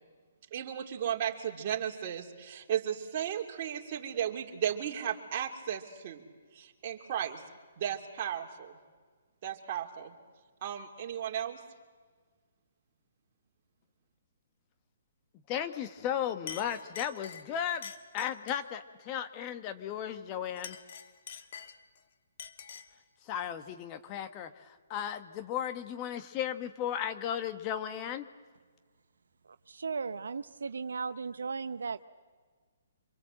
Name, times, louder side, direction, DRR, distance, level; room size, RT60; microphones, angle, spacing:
voice 1, 0.5-6.2 6.5-7.4 7.8-8.7 9.4-10.1 10.6-11.6, right 9 dB, 45° right, 2 dB, 2.9 m, -35 dB
voice 2, 15.5-20.8 23.3-24.5 24.9-28.3, left 9 dB, 30° left, 9 dB, 1.3 m, -35 dB
Chink clink, 16.0-16.2 16.5-18.7 20.5-22.0 22.4-23.0, left 7 dB, 55° left, 1.7 m, -46 dB
voice 3, 29.7-32.0, right 5 dB, 80° right, 12 dB, 0.8 m, -36 dB
26.0 x 24.0 x 7.7 m, 1.5 s
hypercardioid pair, 140°, 0 cm